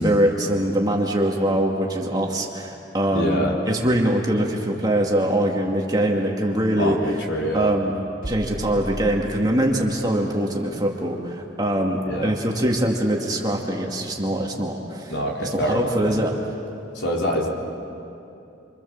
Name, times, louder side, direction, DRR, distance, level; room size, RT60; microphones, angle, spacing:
voice 1, 0.0-7.0 7.5-8.0 8.3-15.1 15.4-16.3, right 1 dB, 20° right, -1 dB, 2.3 m, -23 dB
voice 2, 3.1-3.5 6.8-7.8 12.1-12.3 15.1-16.2 16.9-17.5, equal, 75° left, -2 dB, 4.0 m, -25 dB
sound 1, 8.2-10.1, left 1 dB, 45° right, 1.2 m, -36 dB
27.0 x 26.0 x 7.3 m, 2.7 s
head